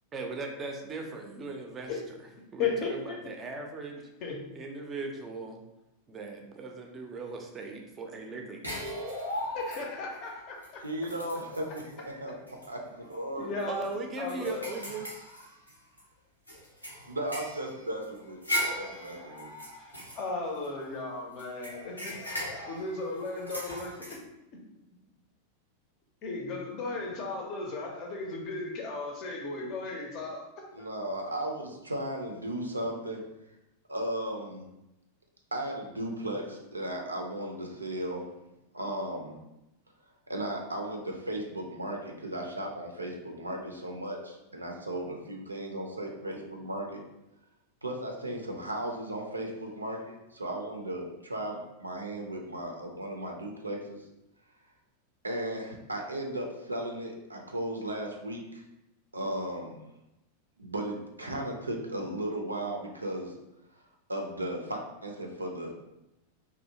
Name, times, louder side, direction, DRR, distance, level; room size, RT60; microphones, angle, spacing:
voice 1, 0.1-2.0 2.5-4.0 4.5-5.6 6.1-8.7 13.7-15.0, right 3 dB, 25° right, 2 dB, 0.4 m, -38 dB
voice 2, 2.6-3.2 4.2-4.4 9.5-10.8 13.4-13.9 14.2-14.7 19.8-22.2 22.7-23.9 26.2-30.5 30.8-30.9, left 3 dB, 40° left, 1 dB, 0.6 m, -35 dB
sound 1, 8.6-10.1 10.6-10.7 11.0-11.9 12.5-12.7 13.0-13.1 13.6-16.0 16.5-20.9 21.4-24.2, equal, 90° left, 0.6 m, -38 dB
voice 3, 10.8-13.8 17.1-18.4 18.8-19.5 30.7-33.2 33.9-34.7 35.5-38.3 38.7-39.4 40.3-47.0 47.8-54.0 55.2-58.6 59.1-59.8 60.6-63.3 64.1-65.9, right 1 dB, 80° right, 1 dB, 0.4 m, -36 dB
2.6 x 2.1 x 2.7 m, 0.92 s
figure-of-eight pair, 90°, 0 cm